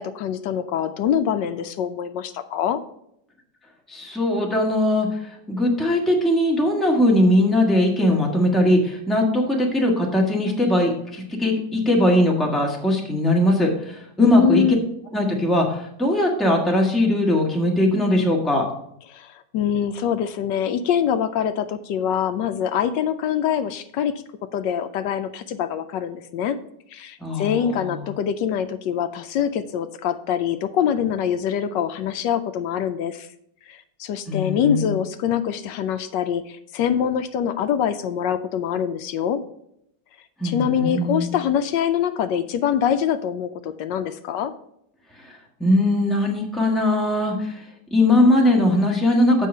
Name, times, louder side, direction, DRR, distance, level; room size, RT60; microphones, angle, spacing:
voice 1, 0.0-2.8 14.2-14.9 19.1-24.1 24.5-26.6 26.9-33.3 33.7-39.4 40.4-44.5, left 8 dB, 80° left, 9 dB, 1.2 m, -24 dB
voice 2, 3.9-5.1 5.5-14.6 15.1-18.7 27.2-28.0 34.3-34.9 40.4-41.3 45.6-47.6 47.9-49.5, left 1 dB, ahead, -1 dB, 1.3 m, -20 dB
7.6 x 5.6 x 5.4 m, 0.74 s
omnidirectional pair, 1.9 m